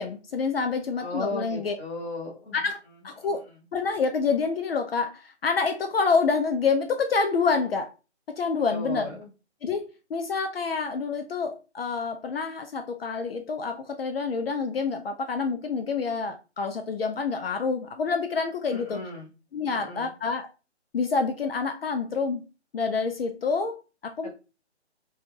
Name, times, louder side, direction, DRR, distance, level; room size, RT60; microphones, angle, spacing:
voice 1, 0.0-1.7 2.5-2.8 3.0-3.4 3.7-7.9 8.3-9.1 9.6-19.0 19.5-20.5 20.9-22.4 22.7-23.8 24.0-24.3, left 4 dB, 60° left, 6 dB, 0.4 m, -27 dB
voice 2, 1.0-2.6 3.2-3.6 8.7-9.3 18.7-19.3 19.7-20.1, left 2 dB, 10° left, -6 dB, 0.7 m, -36 dB
3.2 x 2.3 x 2.6 m, 0.30 s
figure-of-eight pair, 150°, 34 cm